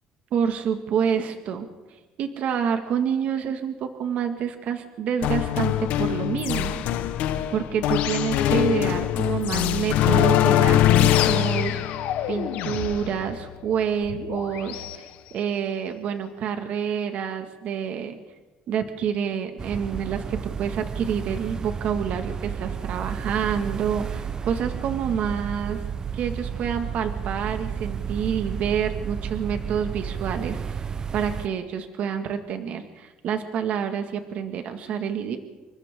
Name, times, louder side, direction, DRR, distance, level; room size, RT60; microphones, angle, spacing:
voice 1, 0.3-1.7 2.2-6.8 7.5-11.8 12.3-18.2 18.7-25.8 26.1-30.8 31.1-35.4, right 7 dB, 60° right, 6 dB, 2.0 m, -28 dB
sound 1, 5.2-15.0, left 12 dB, 75° left, 1.3 m, -23 dB
sound 2, 19.6-31.5, right 7 dB, 25° right, 0.8 m, -32 dB
28.0 x 24.0 x 3.8 m, 1.2 s
cardioid pair, 125°, 3 cm